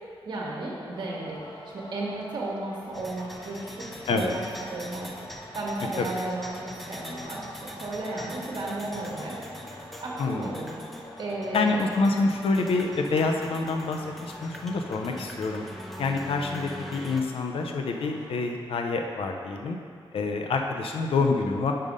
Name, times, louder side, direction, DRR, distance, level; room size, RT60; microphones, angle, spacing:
voice 1, 0.2-1.4 1.7-3.8 4.1-4.4 4.7-5.1 5.5-9.4 10.0-10.7 11.2-11.8 15.1-15.2, right 2 dB, 50° right, -4 dB, 1.3 m, -34 dB
Singing, 0.9-18.5, left 1 dB, 45° left, 0.9 m, -48 dB
sound 1, 2.9-17.2, equal, ahead, 0.5 m, -43 dB
voice 2, 10.2-10.5 11.5-15.6 16.0-19.8 20.1-21.7, left 3 dB, 80° left, 3 dB, 0.5 m, -27 dB
5.6 x 4.9 x 5.3 m, 2.2 s
wide cardioid pair, 125°, 10 cm